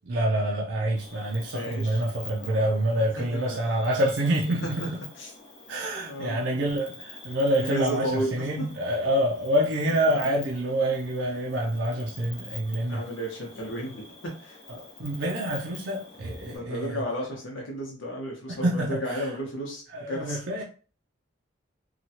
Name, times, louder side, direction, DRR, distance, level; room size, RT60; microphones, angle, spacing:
voice 1, 0.1-5.0 5.7-13.0 14.8-17.0 18.5-19.3 19.9-20.6, right 1 dB, 70° right, 0.5 m, -27 dB
Cricket, 1.0-16.6, left 3 dB, 60° left, 1.0 m, -46 dB
voice 2, 1.5-2.0 2.4-2.7 3.1-3.4 5.1-5.3 6.0-6.8 7.5-8.7 10.2-10.3 12.7-14.6 16.5-20.4, equal, 85° left, 0.9 m, -33 dB
2.9 x 2.3 x 2.8 m
head